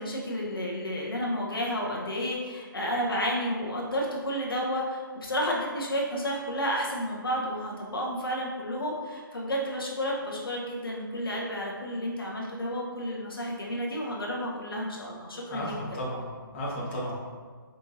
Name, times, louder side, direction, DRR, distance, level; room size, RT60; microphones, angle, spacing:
voice 1, 0.0-15.7, equal, 75° left, -3 dB, 0.8 m, -31 dB
voice 2, 15.5-17.1, equal, 30° left, -5 dB, 0.9 m, -34 dB
4.7 x 2.7 x 2.7 m, 1.5 s
figure-of-eight pair, 140°, 12 cm